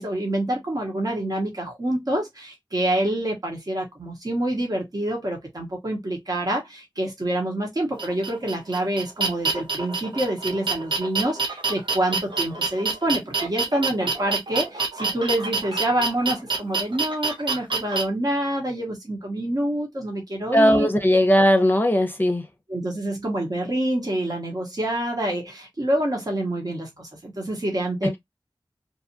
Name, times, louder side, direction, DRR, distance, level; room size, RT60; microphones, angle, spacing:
voice 1, 0.0-20.9 22.7-28.2, right 1 dB, 50° right, 1.0 m, -27 dB
sound 1, 8.0-18.0, right 4 dB, 75° right, 0.9 m, -27 dB
voice 2, 20.5-22.5, equal, 25° left, 0.6 m, -18 dB
2.7 x 2.4 x 2.6 m
wide cardioid pair, 45°, 8 cm